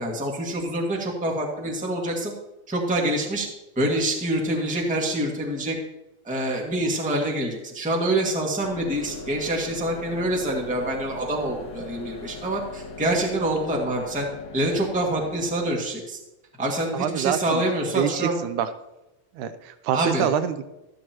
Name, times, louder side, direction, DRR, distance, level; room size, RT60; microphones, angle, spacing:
voice 1, 0.0-2.3 2.7-3.5 3.7-5.7 6.2-14.3 14.5-16.2 16.6-18.4 19.9-20.3, right 1 dB, 5° right, -1 dB, 1.1 m, -26 dB
sound 1, 8.6-15.6, left 3 dB, 60° left, 2.5 m, -40 dB
voice 2, 16.9-17.6 18.0-18.7 19.4-20.6, right 8 dB, 80° right, 11 dB, 2.1 m, -26 dB
13.0 x 12.5 x 3.0 m, 0.98 s
omnidirectional pair, 3.6 m